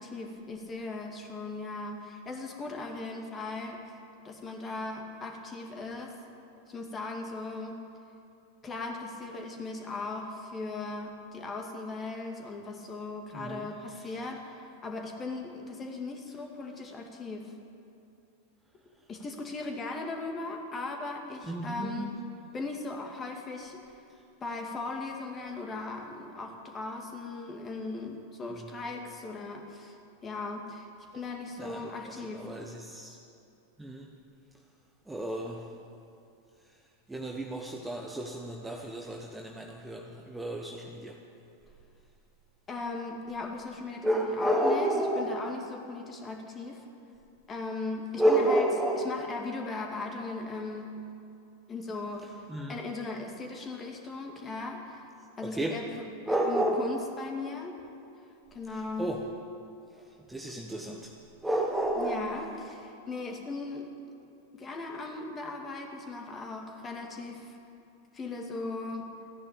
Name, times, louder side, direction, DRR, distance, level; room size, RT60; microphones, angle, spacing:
voice 1, 0.0-3.8 4.2-6.1 6.7-7.8 8.6-17.5 19.1-22.2 22.5-23.8 24.4-30.0 30.2-30.9 31.1-32.5 42.7-46.8 47.5-48.7 49.0-50.9 51.7-52.3 52.7-55.0 55.4-57.8 58.5-59.1 62.0-63.9 64.5-67.6 68.1-69.1, left 3 dB, 20° left, 2 dB, 2.2 m, -38 dB
voice 2, 13.3-13.7 21.4-22.1 28.5-28.7 31.6-33.2 33.8-34.1 35.1-35.7 37.1-41.2 44.0-45.4 48.2-49.2 52.5-52.8 55.4-55.8 56.3-57.0 58.7-59.3 59.9-61.1 61.4-62.5, right 1 dB, 5° right, 1 dB, 1.1 m, -31 dB
15.0 x 10.0 x 8.8 m, 2.6 s
figure-of-eight pair, 90°, 0 cm